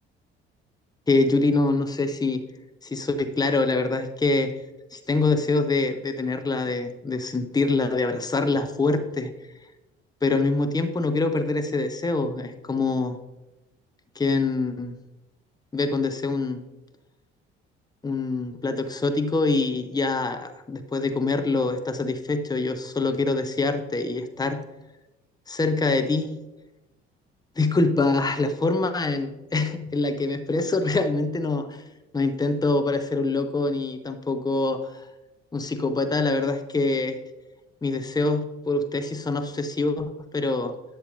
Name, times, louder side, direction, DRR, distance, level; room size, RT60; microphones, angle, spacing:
voice 1, 1.1-2.4 2.8-4.5 4.9-9.3 10.2-13.2 14.2-15.0 15.7-16.6 18.0-24.6 25.5-26.4 27.6-31.8 32.1-35.0 35.5-37.2 37.8-40.7, left 3 dB, 10° left, 9 dB, 0.8 m, -25 dB
11.0 x 8.2 x 2.6 m, 0.99 s
figure-of-eight pair, 50°, 31 cm